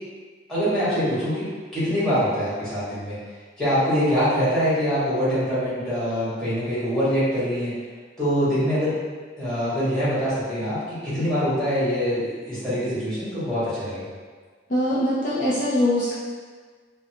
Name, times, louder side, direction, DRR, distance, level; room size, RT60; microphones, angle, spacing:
voice 1, 0.5-3.2 3.6-7.7 8.2-8.9 9.4-14.1, equal, 5° left, -13 dB, 1.5 m, -24 dB
voice 2, 14.7-16.1, left 1 dB, 45° left, -8 dB, 0.5 m, -22 dB
3.9 x 2.2 x 2.8 m, 1.5 s
head